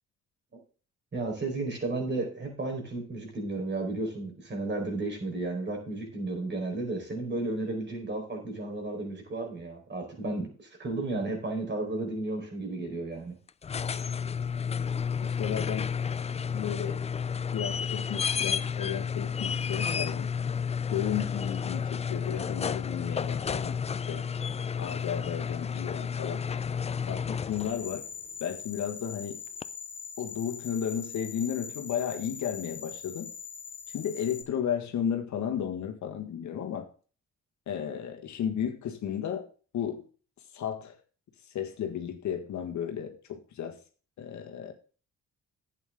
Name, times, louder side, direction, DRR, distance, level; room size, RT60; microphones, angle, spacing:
voice 1, 1.1-13.4, right 2 dB, 35° right, 2 dB, 4.6 m, -33 dB
sound 1, 13.5-27.9 29.6-29.7, left 6 dB, 20° left, 0.4 m, -31 dB
voice 2, 15.2-15.9 16.5-17.0 17.5-20.3 20.9-23.8 24.1-24.3 24.8-26.5 27.0-28.0 28.4-29.4 30.2-33.3 33.9-36.9 37.7-39.5 39.7-40.0 40.5-41.0 41.4-43.8 44.2-44.7, left 9 dB, 70° left, 4 dB, 1.6 m, -33 dB
sound 2, 27.5-34.4, left 6 dB, 50° left, 1.5 m, -42 dB
11.0 x 8.5 x 3.7 m, 0.39 s
cardioid pair, 90°, 30 cm